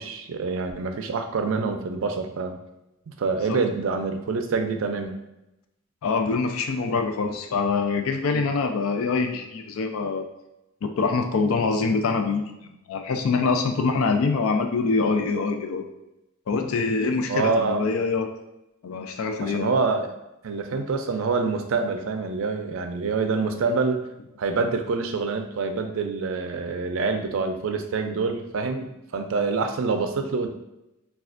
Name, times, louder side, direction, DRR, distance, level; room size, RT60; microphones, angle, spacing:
voice 1, 0.0-2.6 3.1-5.2 8.3-8.5 17.3-17.9 19.4-20.1 20.4-24.1 24.4-30.5, right 4 dB, 70° right, 6 dB, 0.4 m, -26 dB
voice 2, 6.0-10.2 10.8-15.9 16.5-18.3 18.8-19.7, left 4 dB, 85° left, 5 dB, 0.4 m, -25 dB
4.1 x 2.3 x 2.4 m, 0.93 s
head